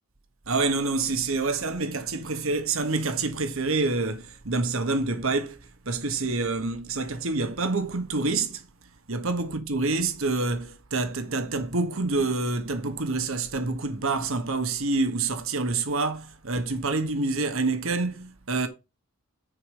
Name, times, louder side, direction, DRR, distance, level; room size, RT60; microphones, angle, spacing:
voice 1, 0.5-5.6 5.8-8.6 9.1-18.7, right 3 dB, 70° right, 1.4 m, -27 dB
9.6 x 4.8 x 5.6 m
head